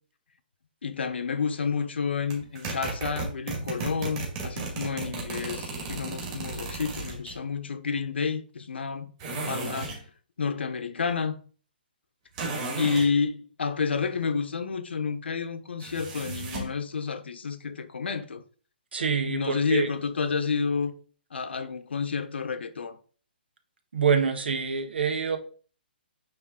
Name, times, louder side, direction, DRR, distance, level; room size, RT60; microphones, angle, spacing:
voice 1, 0.8-9.1 9.5-10.0 10.4-11.4 12.8-18.4 19.2-20.9 21.3-23.0, left 5 dB, 85° left, 1.1 m, -30 dB
sound 1, 2.3-7.3 9.2-10.0 12.3-13.1 15.8-16.8, right 3 dB, 25° right, 2.0 m, -34 dB
voice 2, 18.9-19.9 23.9-25.4, right 6 dB, 80° right, 1.5 m, -26 dB
8.9 x 3.5 x 3.8 m
hypercardioid pair, 170°, 6 cm